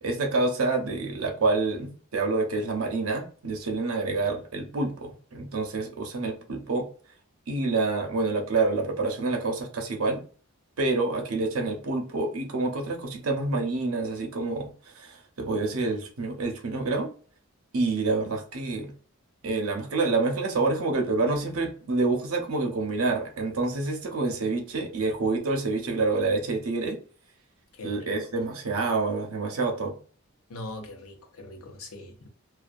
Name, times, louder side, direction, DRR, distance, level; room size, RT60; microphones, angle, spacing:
voice 1, 0.0-6.9 7.5-10.2 10.8-17.1 17.7-18.9 19.4-27.0 27.8-29.9, right 3 dB, 75° right, 0.6 m, -27 dB
voice 2, 30.5-32.3, left 1 dB, 85° left, 0.6 m, -41 dB
2.3 x 2.2 x 2.5 m
head